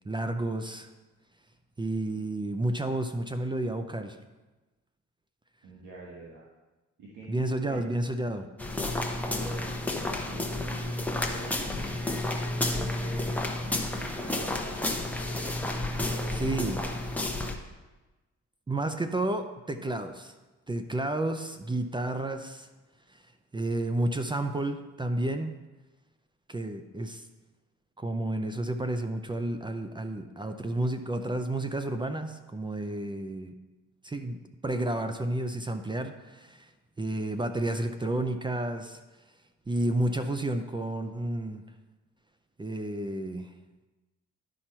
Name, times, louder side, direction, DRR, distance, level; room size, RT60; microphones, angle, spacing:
voice 1, 0.1-0.9 1.8-4.2 7.3-8.5 16.4-16.9 18.7-20.3 20.7-22.7 23.1-23.2 23.5-25.5 26.5-27.2 28.0-33.6 34.0-36.7 37.0-39.0 39.7-41.6 42.6-43.5, right 1 dB, 15° right, 8 dB, 0.5 m, -31 dB
voice 2, 5.6-6.4 7.0-7.8 9.2-12.1 12.7-13.3 13.7-16.4, right 2 dB, 85° right, -5 dB, 1.5 m, -45 dB
sound 1, 8.6-17.6, left 1 dB, 5° left, 0.8 m, -31 dB
11.5 x 4.4 x 4.3 m, 1.2 s
cardioid pair, 90°, 30 cm